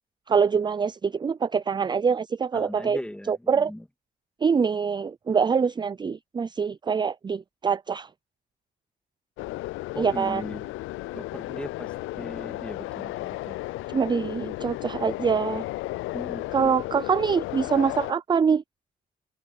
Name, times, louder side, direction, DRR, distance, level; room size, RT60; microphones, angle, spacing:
voice 1, 0.3-3.0 3.3-3.7 4.4-8.1 10.0-10.4 13.9-15.6 16.5-18.6, right 6 dB, 20° right, 0.4 m, -24 dB
voice 2, 2.5-3.8 9.9-10.7 11.1-13.6 16.1-16.7, left 1 dB, 5° left, 2.4 m, -38 dB
sound 1, 9.4-18.1, left 18 dB, 85° left, 0.4 m, -34 dB
cardioid pair, 90°, 20 cm